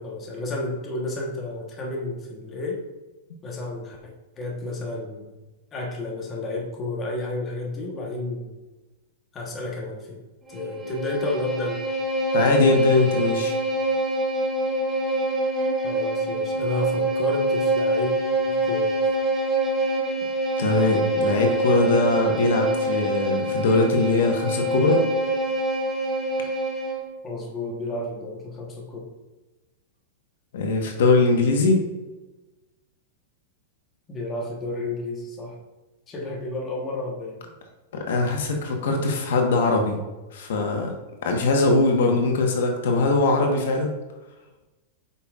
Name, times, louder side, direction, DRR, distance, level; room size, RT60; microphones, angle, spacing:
voice 1, 0.0-2.8 3.4-5.3 5.7-8.5 9.3-10.2 10.5-11.8 15.8-18.1 18.5-18.9 27.2-29.1 34.1-35.6 36.1-37.4, left 2 dB, 20° left, -2 dB, 1.2 m, -31 dB
Bowed string instrument, 10.5-27.1, right 1 dB, 10° right, 1.1 m, -25 dB
voice 2, 12.3-13.5 20.6-25.0 30.5-31.8 37.9-40.0 40.3-40.9 41.2-43.9, left 3 dB, 75° left, 2 dB, 1.3 m, -21 dB
8.1 x 5.7 x 2.5 m, 1.1 s
supercardioid pair, 155°, 0 cm